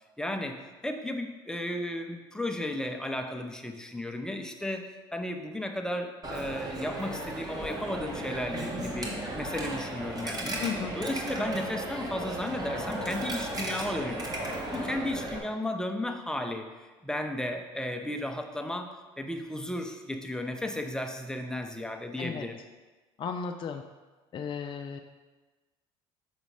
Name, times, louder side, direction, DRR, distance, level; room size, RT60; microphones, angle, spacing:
voice 1, 0.2-10.6 10.9-14.3 14.7-18.9 19.2-22.6, left 1 dB, 5° left, 4 dB, 0.8 m, -34 dB
Coin (dropping), 6.2-15.4, right 1 dB, 30° right, 1.5 m, -35 dB
voice 2, 10.6-10.9 22.2-22.5 23.2-23.8 24.3-25.0, left 6 dB, 40° left, 5 dB, 0.4 m, -34 dB
6.3 x 4.0 x 4.8 m, 1.2 s
hypercardioid pair, 75°, 13 cm